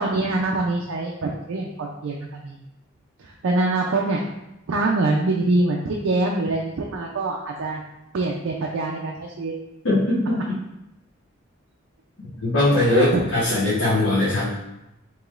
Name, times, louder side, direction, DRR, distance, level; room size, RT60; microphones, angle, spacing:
voice 1, 0.0-2.6 3.2-4.2 4.7-7.8 8.1-9.5 12.9-13.2, right 2 dB, 90° right, -1 dB, 0.4 m, -24 dB
voice 2, 9.8-10.4 12.4-14.5, left 2 dB, 85° left, -10 dB, 1.0 m, -20 dB
4.8 x 3.0 x 2.4 m, 0.90 s
head